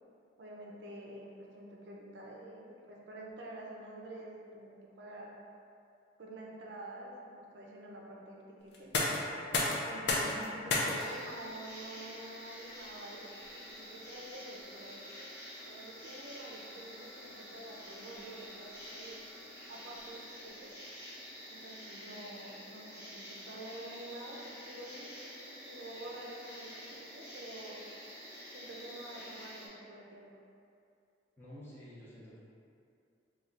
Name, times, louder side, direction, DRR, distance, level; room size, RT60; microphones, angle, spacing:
voice 1, 0.4-5.3 6.2-8.9 9.8-15.0 15.6-19.2 19.7-20.7 21.5-27.8 28.5-30.3, right 1 dB, 65° right, -2 dB, 0.5 m, -48 dB
sound 1, 8.7-20.5, left 2 dB, 65° left, 0.5 m, -39 dB
sound 2, 10.9-29.7, equal, 45° left, 1.3 m, -49 dB
voice 2, 31.4-32.4, equal, 10° left, -9 dB, 0.7 m, -50 dB
3.1 x 2.3 x 3.8 m, 2.5 s
head